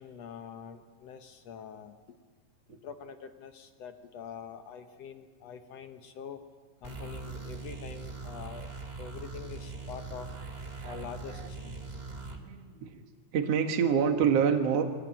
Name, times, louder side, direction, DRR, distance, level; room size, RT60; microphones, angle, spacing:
voice 1, 0.0-2.0 2.7-6.4 6.8-8.7 9.0-10.3 10.8-11.8, left 7 dB, 65° left, 7 dB, 1.7 m, -45 dB
sound 1, 6.8-12.4, right 3 dB, 30° right, 0.8 m, -41 dB
voice 2, 10.8-11.5 12.4-13.0 13.3-14.8, right 7 dB, 55° right, 5 dB, 2.3 m, -28 dB
23.0 x 17.0 x 9.0 m, 1.5 s
omnidirectional pair, 4.0 m